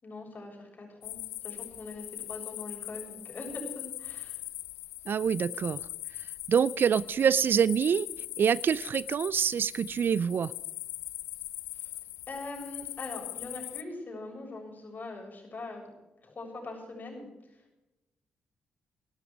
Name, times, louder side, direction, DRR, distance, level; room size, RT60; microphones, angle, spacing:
voice 1, 0.0-4.4 11.7-11.9 12.3-15.9 16.2-17.8, left 2 dB, 45° left, 1 dB, 7.2 m, -42 dB
sound 1, 1.0-13.8, left 15 dB, 75° left, 0.5 m, -41 dB
voice 2, 5.1-5.8 6.5-8.1 8.4-10.5, right 7 dB, 55° right, 21 dB, 0.4 m, -26 dB
15.5 x 13.0 x 6.2 m, 0.98 s
hypercardioid pair, 40°, 4 cm